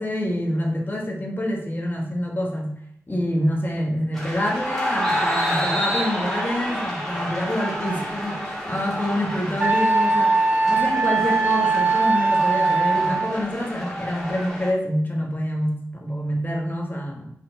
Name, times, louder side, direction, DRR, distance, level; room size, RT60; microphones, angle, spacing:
voice 1, 0.0-2.7 3.1-17.3, equal, 35° left, 0 dB, 1.3 m, -26 dB
sound 1, 4.1-14.7, equal, 5° left, 2.4 m, -29 dB
Wind instrument woodwind instrument, 9.6-13.4, right 3 dB, 30° right, 0.5 m, -20 dB
5.3 x 4.3 x 4.4 m, 0.71 s
wide cardioid pair, 90°, 6 cm